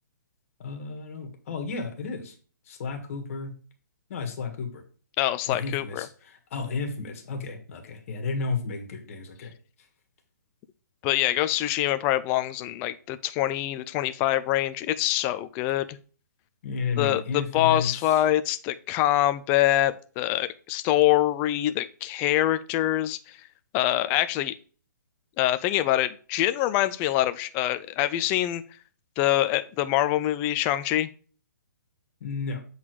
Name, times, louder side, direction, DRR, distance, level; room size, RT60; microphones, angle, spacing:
voice 1, 0.6-2.3 2.6-3.5 4.1-4.8 5.5-9.5 16.6-18.2 32.2-32.6, left 4 dB, 45° left, 5 dB, 1.6 m, -33 dB
voice 2, 5.2-6.1 11.0-16.0 17.0-23.4 23.7-24.5 25.4-28.6 29.2-31.1, left 14 dB, 20° left, 13 dB, 0.4 m, -25 dB
7.8 x 4.0 x 4.6 m, 0.40 s
hypercardioid pair, 155°, 10 cm